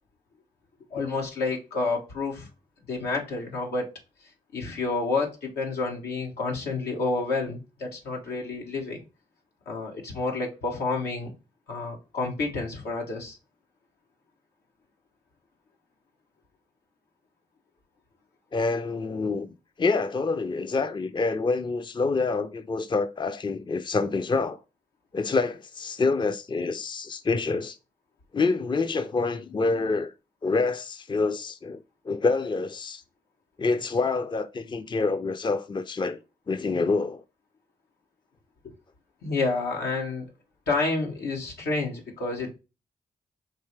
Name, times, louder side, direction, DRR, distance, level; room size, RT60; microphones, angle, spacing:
voice 1, 0.9-2.5 2.9-3.9 4.5-9.0 9.7-11.3 11.7-13.4 39.2-40.3 40.7-42.5, left 3 dB, 90° left, 1.2 m, -29 dB
voice 2, 18.5-19.5 19.8-24.6 25.1-27.8 28.3-30.1 30.4-33.0 33.6-36.2 36.5-37.2, left 3 dB, 30° left, 0.5 m, -27 dB
4.6 x 2.9 x 3.2 m
supercardioid pair, 45°, 16 cm